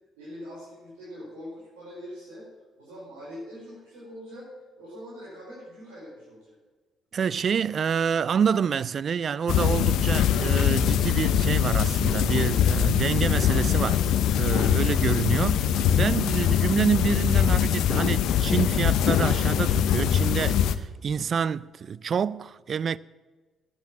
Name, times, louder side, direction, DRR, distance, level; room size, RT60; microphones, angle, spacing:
voice 1, 0.2-2.5 2.8-4.5 4.8-6.5, equal, 85° right, 4.9 m, -43 dB
voice 2, 7.1-23.0, right 7 dB, 50° right, 0.4 m, -27 dB
sound 1, 9.5-20.7, left 9 dB, 70° left, 0.6 m, -22 dB
9.6 x 9.1 x 8.8 m
hypercardioid pair, 50°, 0 cm